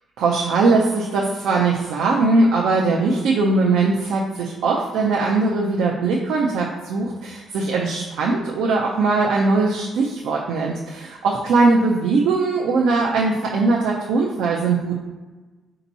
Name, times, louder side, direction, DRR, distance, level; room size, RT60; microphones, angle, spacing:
voice 1, 0.2-15.0, right 3 dB, 85° right, -3 dB, 0.5 m, -20 dB
4.4 x 2.8 x 4.0 m, 1.2 s
cardioid pair, 90°, 0 cm